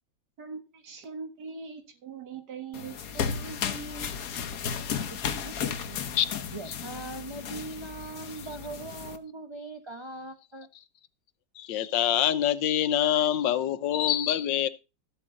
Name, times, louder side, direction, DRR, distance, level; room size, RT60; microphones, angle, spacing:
voice 1, 0.4-4.1, right 4 dB, 60° right, 2.0 m, -41 dB
sound 1, 2.7-9.2, left 7 dB, 55° left, 1.3 m, -34 dB
voice 2, 5.1-6.0 6.5-10.7, right 3 dB, 25° right, 0.6 m, -41 dB
voice 3, 11.6-14.7, left 11 dB, 80° left, 1.5 m, -25 dB
14.0 x 7.8 x 3.8 m
omnidirectional pair, 2.0 m